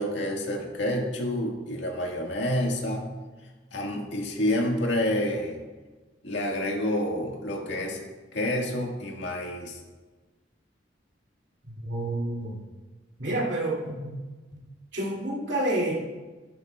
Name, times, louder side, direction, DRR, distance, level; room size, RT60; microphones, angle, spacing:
voice 1, 0.0-3.2 3.7-5.6 6.2-8.0 8.3-9.8, left 1 dB, 75° left, 0 dB, 1.8 m, -28 dB
voice 2, 11.8-12.6 13.2-14.1 14.5-14.6 14.9-15.9, right 1 dB, 70° right, -4 dB, 2.6 m, -29 dB
11.5 x 11.0 x 2.4 m, 1.3 s
head